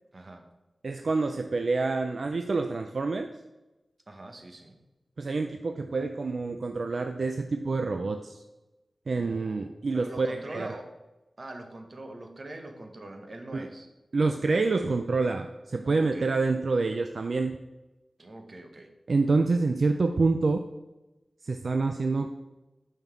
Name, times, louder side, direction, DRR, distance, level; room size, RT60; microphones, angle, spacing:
voice 1, 0.1-0.4 4.1-4.8 9.1-10.9 11.4-13.9 15.8-16.3 18.2-18.9, right 1 dB, 45° right, 5 dB, 0.9 m, -43 dB
voice 2, 0.8-3.3 5.2-8.4 9.1-10.8 13.5-13.7 14.1-17.6 19.1-20.6 21.4-22.3, right 3 dB, 70° right, 6 dB, 0.4 m, -27 dB
5.6 x 5.4 x 4.6 m, 1.0 s
wide cardioid pair, 80°, 0 cm